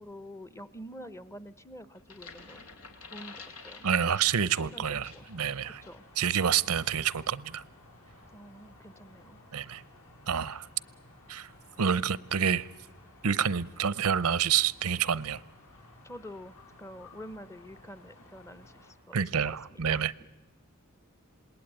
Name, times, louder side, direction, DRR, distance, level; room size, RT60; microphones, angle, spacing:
voice 1, 0.0-3.8 4.4-4.8 5.1-5.3 5.6-6.0 6.6-6.7 8.3-9.4 16.0-19.2 19.4-20.3, equal, 10° left, 0.8 m, -47 dB
sound 1, 2.0-5.4 5.8-6.0, left 4 dB, 90° left, 3.4 m, -49 dB
voice 2, 3.8-5.8 6.2-7.6 9.5-9.8 10.3-10.7 11.3-11.5 11.8-12.7 13.2-15.4 19.1-20.1, right 7 dB, 80° right, 0.7 m, -28 dB
sound 2, 5.1-18.9, left 2 dB, 70° left, 5.8 m, -56 dB
27.5 x 19.5 x 9.0 m
head